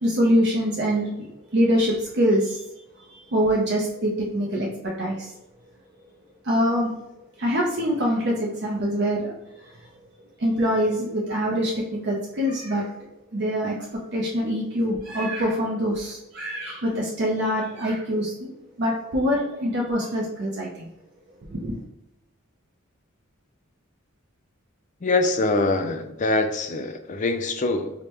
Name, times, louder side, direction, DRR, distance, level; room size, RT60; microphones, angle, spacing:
voice 1, 0.0-2.6 2.9-5.3 6.4-7.0 7.4-9.3 9.6-9.8 10.4-13.9 14.1-18.5 18.8-20.9 21.5-21.8, equal, 50° right, -3 dB, 0.6 m, -24 dB
voice 2, 25.0-27.9, left 2 dB, 35° left, 7 dB, 0.4 m, -24 dB
5.0 x 2.1 x 2.9 m, 0.88 s
head